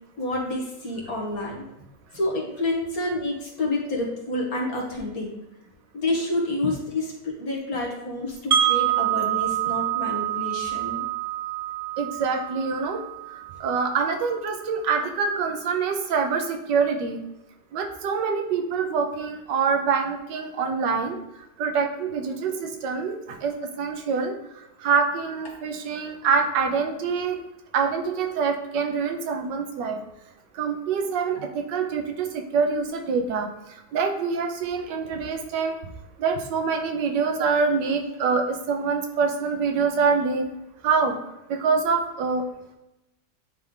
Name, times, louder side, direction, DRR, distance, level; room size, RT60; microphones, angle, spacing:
voice 1, 0.2-1.7 2.1-5.3 5.9-11.0 13.5-13.6 31.4-31.5, left 2 dB, 55° left, -1 dB, 1.8 m, -29 dB
Wind chime, 8.5-14.5, right 11 dB, 50° right, 0.9 m, -27 dB
voice 2, 12.0-13.0 13.6-17.2 17.7-21.2 21.6-24.3 24.8-27.4 27.7-30.0 30.5-33.5 33.9-35.8 36.2-40.4 40.8-41.2 41.5-42.5, right 5 dB, 80° right, 5 dB, 1.5 m, -25 dB
9.5 x 3.4 x 3.8 m, 0.94 s
omnidirectional pair, 1.9 m